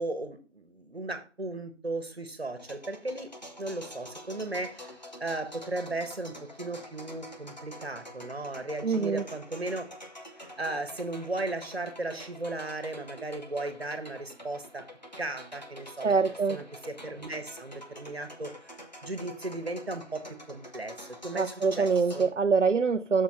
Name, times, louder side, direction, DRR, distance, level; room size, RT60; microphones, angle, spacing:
voice 1, 0.0-3.3 3.6-9.8 10.6-14.8 15.2-16.2 16.5-18.5 19.0-21.9 22.1-22.3, right 2 dB, 60° right, 9 dB, 1.5 m, -36 dB
sound 1, 2.6-22.3, equal, 40° left, 0.9 m, -47 dB
voice 2, 8.8-9.2 16.0-16.6 21.3-23.2, right 5 dB, 85° right, 8 dB, 0.6 m, -25 dB
6.8 x 5.6 x 4.6 m, 0.35 s
figure-of-eight pair, 175°, 36 cm